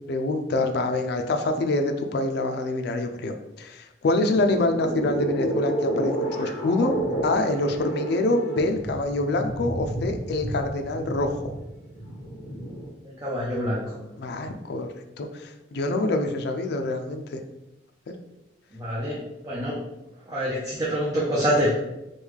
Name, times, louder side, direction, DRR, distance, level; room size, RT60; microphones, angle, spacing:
voice 1, 0.1-6.9 7.2-11.4 14.2-14.9 15.2-17.4, left 2 dB, 60° left, 6 dB, 0.4 m, -26 dB
sound 1, 4.3-12.9, right 1 dB, 35° left, 1.4 m, -30 dB
voice 2, 13.2-13.8 18.7-19.2 19.4-19.8 20.3-21.8, equal, 20° right, -6 dB, 0.5 m, -25 dB
3.1 x 2.2 x 3.5 m, 0.94 s
head